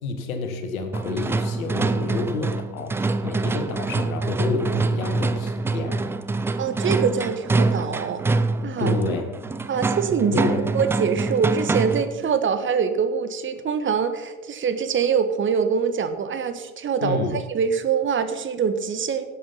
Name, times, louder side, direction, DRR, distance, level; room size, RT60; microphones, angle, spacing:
voice 1, 0.0-6.0 8.8-9.3 10.3-10.7 17.0-17.4, left 4 dB, 70° left, 7 dB, 2.0 m, -29 dB
sound 1, 0.9-12.2, right 3 dB, 5° right, 0.3 m, -25 dB
voice 2, 6.6-8.2 8.6-9.0 9.7-10.5 10.7-19.2, right 6 dB, 25° right, 9 dB, 1.3 m, -24 dB
17.5 x 7.9 x 5.6 m, 1.2 s
figure-of-eight pair, 70°, 43 cm